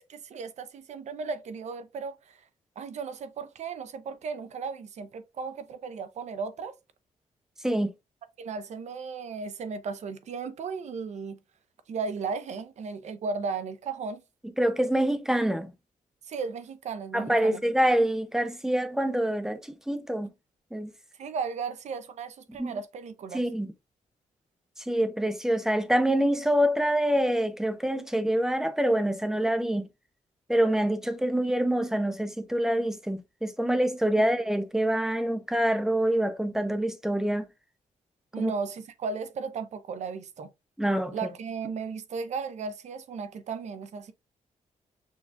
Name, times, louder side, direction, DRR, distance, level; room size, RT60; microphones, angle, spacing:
voice 1, 0.0-2.4 2.8-6.8 8.4-11.4 11.9-14.2 16.3-17.6 21.2-23.4 38.3-40.5 41.1-44.1, right 5 dB, 55° right, 0.6 m, -35 dB
voice 2, 14.6-15.7 17.1-19.6 19.9-20.3 20.7-20.9 22.6-22.7 23.3-23.7 24.9-29.8 30.5-37.5 38.4-38.5 40.8-41.3, right 1 dB, 5° right, 0.5 m, -26 dB
6.2 x 2.4 x 2.6 m
wide cardioid pair, 150°, 14 cm